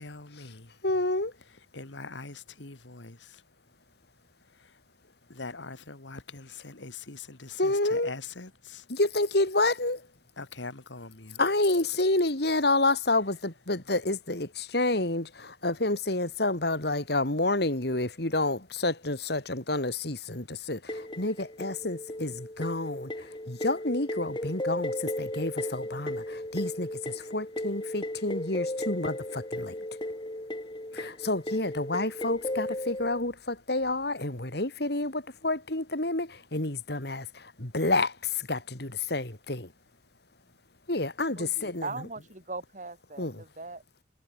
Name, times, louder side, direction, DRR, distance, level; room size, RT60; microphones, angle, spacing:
voice 1, 0.0-0.7 1.7-3.4 4.6-4.7 5.3-8.8 10.4-11.4, left 3 dB, 90° left, 2.5 m, -42 dB
voice 2, 0.8-1.3 7.6-8.1 8.9-10.0 11.4-29.8 30.9-39.7 40.9-41.9 43.2-43.4, left 2 dB, 60° left, 3.2 m, -29 dB
sound 1, 20.9-33.2, left 1 dB, 25° left, 3.4 m, -35 dB
voice 3, 41.3-43.8, right 3 dB, 45° right, 3.9 m, -40 dB
head